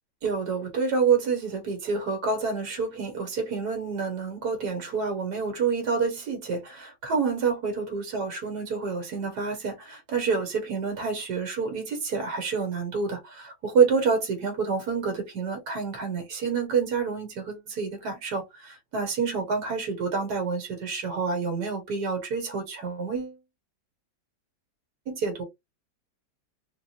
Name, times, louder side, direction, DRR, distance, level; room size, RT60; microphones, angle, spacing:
voice 1, 0.2-23.4 25.1-25.4, right 5 dB, 70° right, 1.9 m, -28 dB
4.0 x 2.5 x 2.7 m
omnidirectional pair, 1.8 m